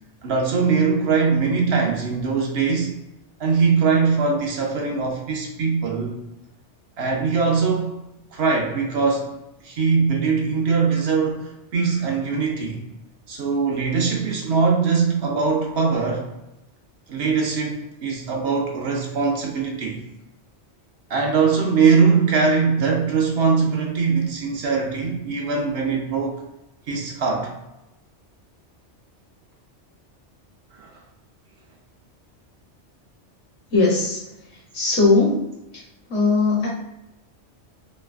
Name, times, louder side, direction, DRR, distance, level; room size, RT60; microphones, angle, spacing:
voice 1, 0.2-3.0 3.4-6.1 7.0-7.9 8.3-9.4 9.6-12.8 13.3-16.3 17.1-20.0 21.1-26.4 26.9-27.5 30.7-31.0, right 5 dB, 65° right, 0 dB, 0.8 m, -21 dB
voice 2, 33.7-34.2 34.5-35.4 35.7-35.8 36.1-36.7, left 3 dB, 65° left, -4 dB, 1.2 m, -19 dB
3.1 x 2.4 x 2.3 m, 0.90 s
omnidirectional pair, 1.2 m